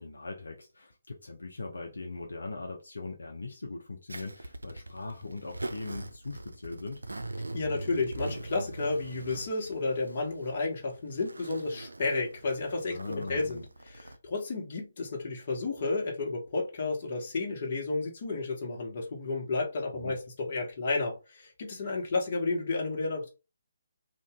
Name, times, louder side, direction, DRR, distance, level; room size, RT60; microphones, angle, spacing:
voice 1, 0.0-7.0 12.9-13.6 19.9-20.2, left 3 dB, 75° left, 0.7 m, -40 dB
Zipper (clothing), 4.1-14.2, right 2 dB, 80° right, 0.4 m, -42 dB
voice 2, 7.5-23.3, left 3 dB, 45° left, 1.3 m, -32 dB
3.0 x 2.6 x 3.5 m
figure-of-eight pair, 145°, 0 cm